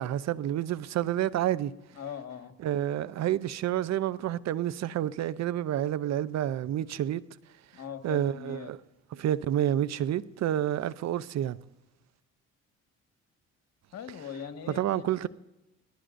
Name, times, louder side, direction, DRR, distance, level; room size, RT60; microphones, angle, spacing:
voice 1, 0.0-1.7 2.6-7.2 8.0-8.8 9.1-11.6 14.7-15.3, right 11 dB, 60° right, 0.7 m, -29 dB
voice 2, 1.9-2.6 7.7-8.7 13.9-15.3, left 8 dB, 55° left, 1.7 m, -41 dB
26.0 x 17.5 x 2.6 m
supercardioid pair, 75°, 30 cm